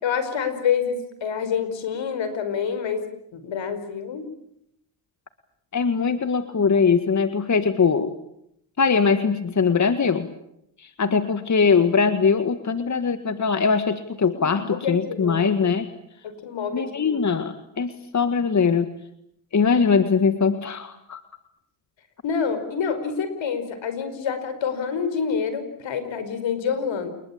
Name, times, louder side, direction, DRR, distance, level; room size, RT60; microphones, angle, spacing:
voice 1, 0.0-3.1 3.3-4.3 14.3-15.5 16.2-17.2 22.2-27.1, left 6 dB, 65° left, 11 dB, 5.2 m, -27 dB
voice 2, 5.7-8.1 8.8-10.3 10.8-15.9 16.7-18.9 19.5-21.2, left 5 dB, 35° left, 10 dB, 1.9 m, -21 dB
29.0 x 21.0 x 8.7 m, 0.77 s
cardioid pair, 75°, 48 cm